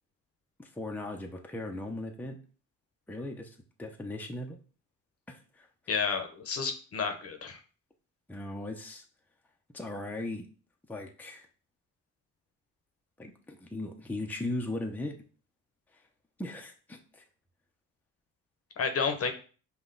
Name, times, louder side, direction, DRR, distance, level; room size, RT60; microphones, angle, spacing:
voice 1, 0.6-2.4 3.1-4.6 5.3-5.7 8.3-9.0 9.7-10.5 10.9-11.5 13.2-15.2 16.4-17.2, left 1 dB, 5° left, 2 dB, 0.7 m, -38 dB
voice 2, 5.9-7.6 18.8-19.3, left 5 dB, 50° left, 6 dB, 0.8 m, -31 dB
5.4 x 2.4 x 3.9 m, 0.38 s
cardioid pair, 90°, 30 cm